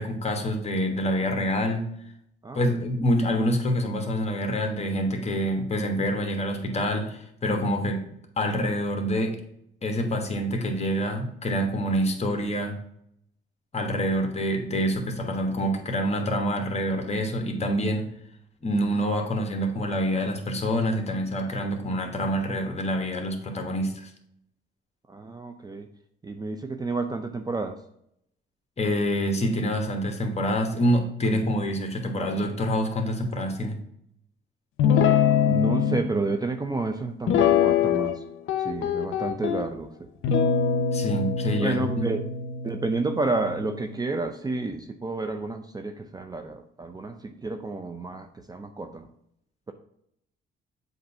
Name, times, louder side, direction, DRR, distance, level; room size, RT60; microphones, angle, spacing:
voice 1, 0.0-1.9 2.5-8.1 8.4-9.4 9.8-12.8 13.7-18.1 18.6-24.1 28.8-33.8 40.9-42.1, equal, 30° left, 4 dB, 1.4 m, -26 dB
voice 2, 2.4-2.8 25.1-25.9 26.2-27.8 35.5-38.2 38.6-39.9 41.6-42.2 42.6-49.1, right 3 dB, 20° right, 6 dB, 0.5 m, -30 dB
Guitar, 34.8-36.0 37.3-38.2 38.5-39.6 40.2-43.7, left 8 dB, 80° left, 0.7 m, -23 dB
7.8 x 2.6 x 5.7 m, 0.74 s
cardioid pair, 90°, 20 cm